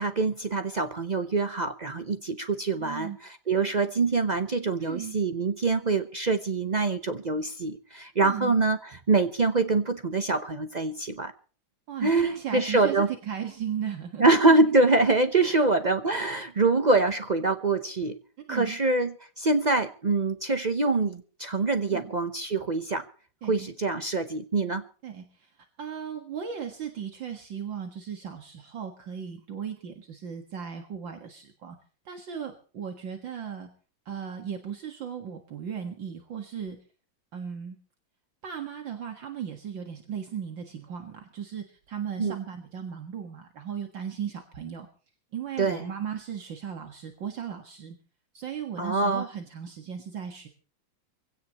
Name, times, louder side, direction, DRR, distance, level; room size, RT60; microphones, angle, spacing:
voice 1, 0.0-11.3 12.0-13.1 14.2-18.2 18.5-23.1 23.5-24.8 42.2-42.3 45.6-45.9 48.8-49.2, right 3 dB, 90° right, 0.3 m, -25 dB
voice 2, 2.7-3.2 4.8-5.2 8.1-8.5 11.9-14.6 15.4-15.6 18.5-18.8 21.9-22.1 23.4-23.7 25.0-31.8 32.1-33.7 34.1-36.8 37.3-37.8 38.4-44.9 45.3-48.0 48.3-50.5, right 8 dB, 65° right, 2.4 m, -36 dB
23.5 x 16.5 x 3.0 m
omnidirectional pair, 2.2 m